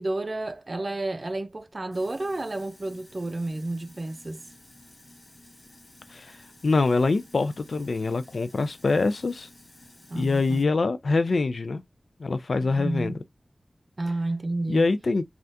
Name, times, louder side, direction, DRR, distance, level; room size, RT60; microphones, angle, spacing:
voice 1, 0.0-4.5 10.1-10.7 12.6-13.2 14.0-14.9, right 2 dB, 45° right, 0.5 m, -31 dB
Sink (filling or washing), 1.9-10.6, left 1 dB, 55° left, 0.9 m, -53 dB
voice 2, 6.6-9.5 10.1-11.8 12.2-13.1 14.7-15.2, left 3 dB, 75° left, 0.3 m, -24 dB
3.4 x 2.3 x 2.6 m
wide cardioid pair, 65°, 0 cm